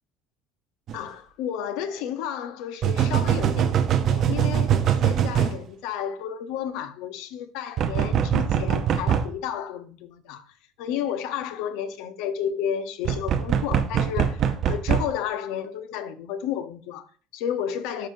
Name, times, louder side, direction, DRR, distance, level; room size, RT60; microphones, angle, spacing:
voice 1, 0.9-18.1, left 9 dB, 70° left, 0.8 m, -32 dB
sound 1, 0.9-1.0 2.8-5.6 7.8-9.3 13.0-15.1, right 9 dB, 35° right, 0.6 m, -22 dB
12.5 x 4.6 x 2.7 m
cardioid pair, 170°, 0 cm